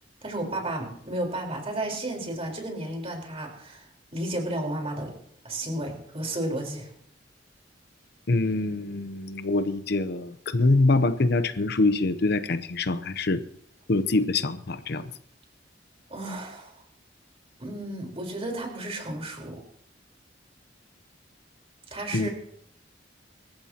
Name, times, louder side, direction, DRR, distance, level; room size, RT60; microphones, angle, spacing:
voice 1, 0.2-5.1 5.4-6.9 16.1-16.8 17.6-19.6 21.9-22.3, right 1 dB, 35° right, 1 dB, 4.2 m, -33 dB
voice 2, 8.3-13.4 13.9-15.1 22.1-22.3, left 2 dB, 60° left, 12 dB, 0.7 m, -24 dB
25.5 x 14.5 x 2.9 m, 0.68 s
head